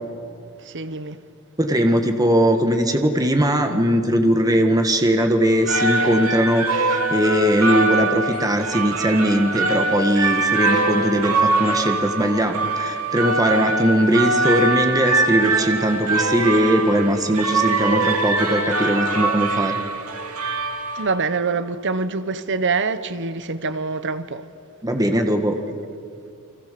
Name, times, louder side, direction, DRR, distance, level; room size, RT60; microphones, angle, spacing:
voice 1, 0.6-1.2 20.9-24.5, right 4 dB, 55° right, 1.1 m, -25 dB
voice 2, 1.6-19.8 24.8-25.6, equal, 15° right, 1.7 m, -20 dB
sound 1, 5.4-21.3, right 3 dB, 80° right, 2.5 m, -23 dB
30.0 x 24.5 x 6.9 m
head